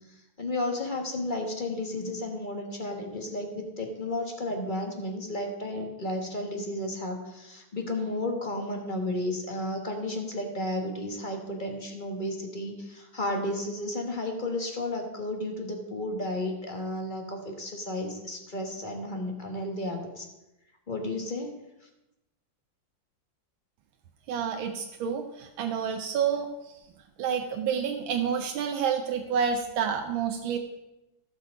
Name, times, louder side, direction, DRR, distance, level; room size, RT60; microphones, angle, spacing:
voice 1, 0.4-20.3 20.9-21.5, left 1 dB, 30° left, 3 dB, 1.3 m, -33 dB
voice 2, 24.3-26.8 27.2-30.6, right 7 dB, 90° right, 5 dB, 1.6 m, -29 dB
15.0 x 6.1 x 5.1 m, 0.95 s
omnidirectional pair, 2.1 m